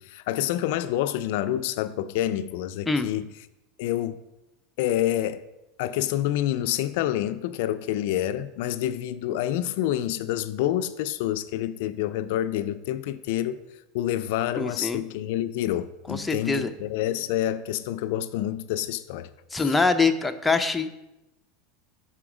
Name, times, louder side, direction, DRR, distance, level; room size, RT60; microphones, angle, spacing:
voice 1, 0.0-3.3 3.8-4.2 4.8-5.4 5.8-13.6 13.9-19.7, left 12 dB, 70° left, 0.3 m, -28 dB
voice 2, 14.6-15.0 16.1-16.7 19.5-20.9, left 4 dB, 10° left, 0.5 m, -24 dB
6.9 x 4.3 x 4.9 m
supercardioid pair, 125°, 0 cm